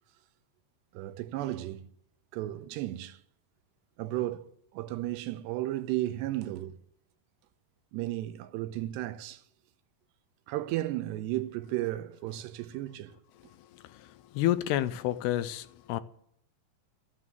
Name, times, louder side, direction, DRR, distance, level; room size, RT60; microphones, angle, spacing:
voice 1, 0.9-1.9 2.3-3.2 4.0-6.8 7.9-9.4 10.5-13.2, right 15 dB, 85° right, 2.9 m, -34 dB
voice 2, 13.6-16.0, left 13 dB, 80° left, 2.6 m, -30 dB
13.5 x 9.9 x 7.6 m
omnidirectional pair, 4.9 m